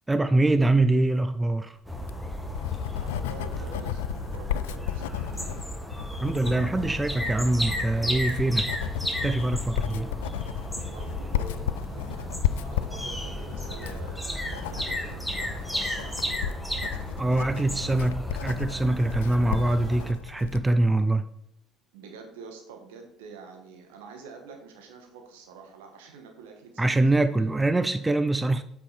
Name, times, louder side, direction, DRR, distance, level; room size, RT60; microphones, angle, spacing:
voice 1, 0.1-1.8 6.2-8.7 9.2-10.1 17.2-21.2 26.8-28.6, right 2 dB, 15° right, 0.5 m, -24 dB
sound 1, 1.9-20.1, equal, ahead, 1.6 m, -34 dB
Writing, 2.0-20.7, left 12 dB, 75° left, 0.3 m, -34 dB
voice 2, 3.0-5.6 9.8-10.0 10.8-16.6 17.0-18.2 21.9-27.5, right 5 dB, 75° right, 1.6 m, -47 dB
8.2 x 5.5 x 4.2 m
hypercardioid pair, 60°, 0 cm